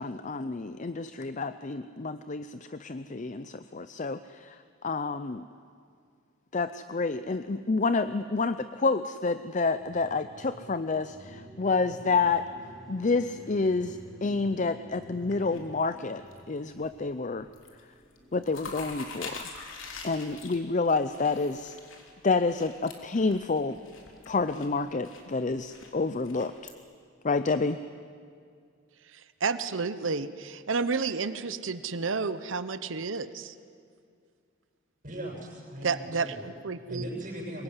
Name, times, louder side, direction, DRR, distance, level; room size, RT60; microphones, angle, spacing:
voice 1, 0.0-4.6 4.8-5.4 6.5-12.4 12.9-16.2 16.5-17.5 18.3-19.5 20.0-21.8 22.2-23.8 24.3-26.7 27.2-27.8, left 3 dB, 40° left, 12 dB, 0.5 m, -29 dB
sound 1, 9.8-18.8, right 1 dB, ahead, 5.3 m, -50 dB
sound 2, 15.2-16.4 16.7-17.1 17.4-17.8 18.1-26.7, left 4 dB, 80° left, 3.4 m, -45 dB
voice 2, 29.0-33.5 35.8-37.1, right 4 dB, 70° right, 12 dB, 0.9 m, -31 dB
voice 3, 35.0-36.5 36.9-37.6, right 1 dB, 40° right, -1 dB, 7.3 m, -39 dB
24.0 x 21.5 x 9.8 m, 2.3 s
head